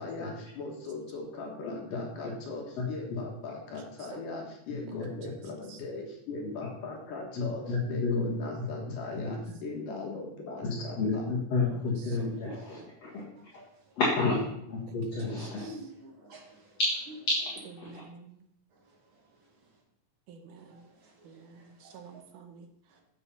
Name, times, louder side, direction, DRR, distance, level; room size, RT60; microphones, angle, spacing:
voice 1, 0.0-11.3, left 3 dB, 70° left, 0 dB, 3.0 m, -39 dB
voice 2, 1.7-2.0 2.8-2.9 3.7-3.8 4.8-5.1 6.4-6.5 7.4-8.3 9.1-9.3 10.6-13.2 14.0-15.6 17.8-18.0, left 3 dB, 50° left, -5 dB, 2.6 m, -31 dB
voice 3, 3.8-4.2 4.9-5.0 5.3-5.4 5.7-5.8 9.1-9.2 11.7-12.9 14.9-15.8 17.8-18.4 20.3-20.9 21.2-23.0, right 5 dB, 70° right, 5 dB, 2.4 m, -51 dB
voice 4, 13.0-14.0 15.5-16.8 18.7-19.8 20.7-22.2 22.9-23.0, right 1 dB, 45° right, 0 dB, 2.1 m, -52 dB
7.8 x 7.1 x 5.5 m, 0.75 s
omnidirectional pair, 4.0 m